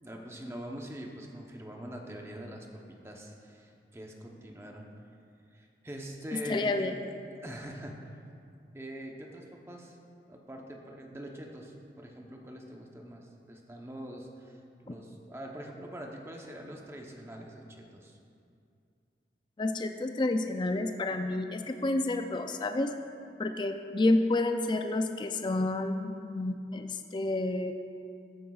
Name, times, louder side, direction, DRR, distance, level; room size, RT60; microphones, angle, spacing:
voice 1, 0.0-4.8 5.5-6.9 7.4-8.0 8.7-10.0 10.3-18.2, equal, 15° right, 0 dB, 0.8 m, -44 dB
voice 2, 6.3-6.9 14.9-15.0 19.6-22.9 23.4-27.7, left 2 dB, 25° left, 6 dB, 0.3 m, -29 dB
14.0 x 9.0 x 2.4 m, 2.5 s
head